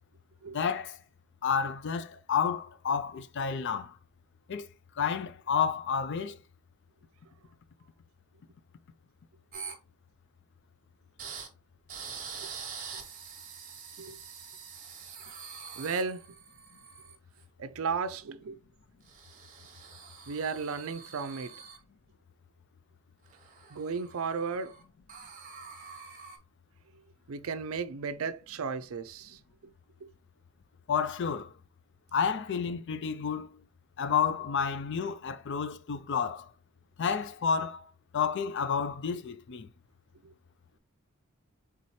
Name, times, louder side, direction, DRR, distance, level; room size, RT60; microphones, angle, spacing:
voice 1, 0.5-1.0 1.4-3.9 4.5-4.7 5.0-6.4 30.9-31.5 32.1-33.6 34.0-36.5 37.0-37.8 38.1-39.7, left 6 dB, 55° left, 0.4 m, -30 dB
sound 1, 9.5-9.7 11.2-11.5 11.9-17.4 19.1-21.8 23.3-24.8 25.1-26.4, right 6 dB, 40° right, 1.1 m, -45 dB
voice 2, 15.8-16.3 17.6-18.6 20.3-21.5 23.7-24.7 27.3-29.4 40.2-40.3, right 5 dB, 75° right, 0.5 m, -34 dB
4.2 x 3.8 x 3.1 m
head